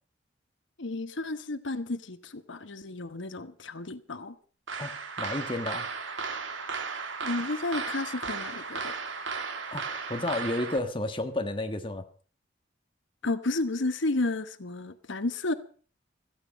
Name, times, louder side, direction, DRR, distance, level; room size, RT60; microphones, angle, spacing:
voice 1, 0.8-4.4 7.2-8.9 13.2-15.5, left 2 dB, 80° left, 1.1 m, -32 dB
sound 1, 4.7-10.8, right 4 dB, 80° right, 2.1 m, -35 dB
voice 2, 4.8-5.9 9.7-12.0, left 2 dB, 25° left, 1.4 m, -32 dB
16.5 x 14.5 x 5.3 m
head